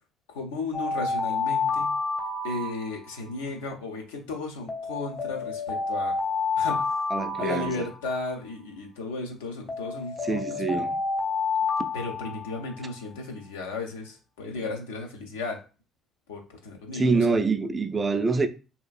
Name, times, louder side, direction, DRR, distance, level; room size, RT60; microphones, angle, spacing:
voice 1, 0.3-1.9 2.4-6.1 6.6-7.0 7.4-10.9 11.9-15.6 16.3-17.4, left 3 dB, 85° left, 0.6 m, -35 dB
Alarm, 0.7-3.3 4.7-8.3 9.7-12.9, left 4 dB, 50° left, 0.9 m, -29 dB
voice 2, 7.1-7.9 10.2-10.9 16.9-18.5, right 4 dB, 30° right, 0.4 m, -25 dB
2.8 x 2.4 x 2.4 m
hypercardioid pair, 55°, 0 cm